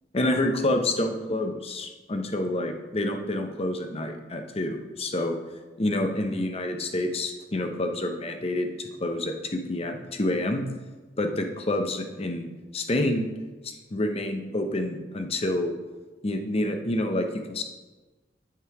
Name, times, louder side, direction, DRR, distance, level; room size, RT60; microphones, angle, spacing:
voice 1, 0.1-5.4 5.8-8.7 9.0-10.6 11.2-13.3 13.6-15.7 16.2-17.6, left 1 dB, 35° left, 5 dB, 0.8 m, -28 dB
8.6 x 5.6 x 4.8 m, 1.2 s
head